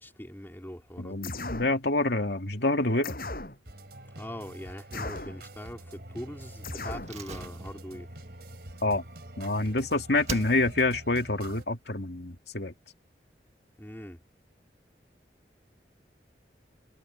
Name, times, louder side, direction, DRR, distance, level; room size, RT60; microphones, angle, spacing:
voice 1, 0.0-1.3 4.1-8.1 13.8-14.2, equal, 10° left, 2.9 m, -42 dB
voice 2, 1.0-3.2 8.8-9.0 9.4-12.7, left 2 dB, 75° left, 2.3 m, -27 dB
sound 1, 1.2-1.8 3.0-3.6 4.9-5.4 6.6-7.2, left 2 dB, 55° left, 7.0 m, -37 dB
sound 2, 3.7-11.7, right 1 dB, 65° right, 3.8 m, -46 dB
Slam, 7.0-9.8 10.2-11.0 11.3-11.4, right 4 dB, 40° right, 1.8 m, -41 dB
head